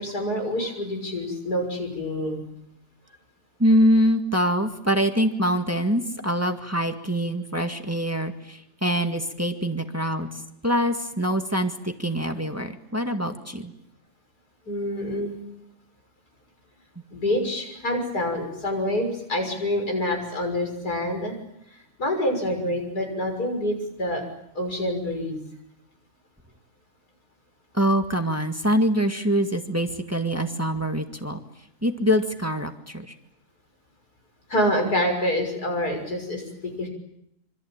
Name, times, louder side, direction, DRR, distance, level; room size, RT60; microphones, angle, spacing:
voice 1, 0.0-2.4 14.7-15.4 17.1-21.3 21.7-24.2 24.5-25.4 34.5-36.9, left 1 dB, 70° left, 3 dB, 6.9 m, -27 dB
voice 2, 3.6-10.3 10.6-13.7 27.7-31.4 31.8-33.1, equal, 10° right, 5 dB, 1.8 m, -24 dB
26.0 x 25.5 x 8.9 m, 0.78 s
omnidirectional pair, 1.7 m